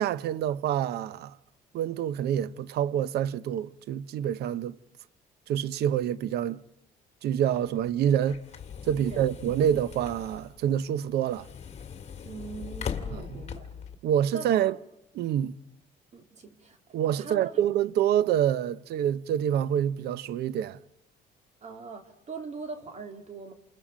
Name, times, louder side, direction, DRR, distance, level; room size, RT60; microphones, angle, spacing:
voice 1, 0.0-1.4 1.7-4.8 5.5-6.6 7.2-8.4 8.9-11.5 13.1-13.4 14.0-14.8 15.1-15.6 16.9-20.8, right 10 dB, 75° right, 0.8 m, -27 dB
sound 1, 7.4-13.9, left 7 dB, 40° left, 2.3 m, -40 dB
voice 2, 9.0-9.6 12.2-13.7 14.3-14.8 16.1-17.5 21.6-23.5, right 4 dB, 45° right, 3.3 m, -42 dB
29.5 x 28.0 x 5.1 m
cardioid pair, 110°, 17 cm